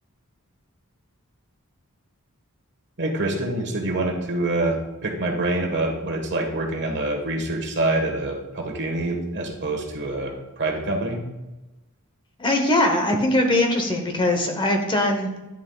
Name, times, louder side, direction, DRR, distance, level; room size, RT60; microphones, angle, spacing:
voice 1, 3.0-11.2, right 2 dB, 55° right, 2 dB, 1.4 m, -26 dB
voice 2, 12.4-15.3, left 1 dB, 20° left, 3 dB, 0.9 m, -21 dB
9.9 x 7.1 x 2.3 m, 1.0 s
head